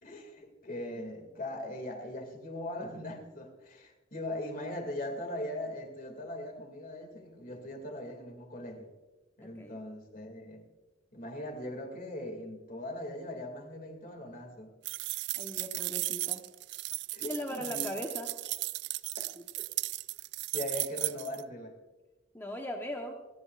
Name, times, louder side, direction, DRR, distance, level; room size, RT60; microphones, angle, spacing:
voice 1, 0.0-8.9 9.4-10.7 11.1-14.7 17.1-17.9 19.2-19.3 20.5-21.8, left 1 dB, 45° left, 5 dB, 2.4 m, -40 dB
sound 1, 14.8-21.4, right 18 dB, 60° right, 0.3 m, -35 dB
voice 2, 15.4-16.4 17.2-18.3 22.3-23.2, left 1 dB, 10° left, 0 dB, 1.1 m, -38 dB
28.0 x 10.5 x 2.5 m, 1.2 s
head